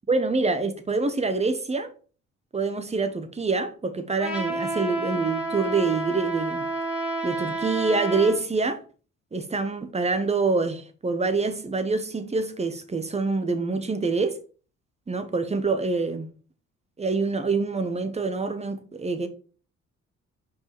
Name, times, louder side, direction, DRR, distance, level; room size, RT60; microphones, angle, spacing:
voice 1, 0.1-1.9 2.5-6.6 7.2-8.8 9.3-14.4 15.1-16.3 17.0-19.3, right 3 dB, 20° right, 1.1 m, -26 dB
Trumpet, 4.2-8.4, right 2 dB, 5° right, 2.7 m, -29 dB
5.6 x 4.6 x 4.8 m
cardioid pair, 90°, 30 cm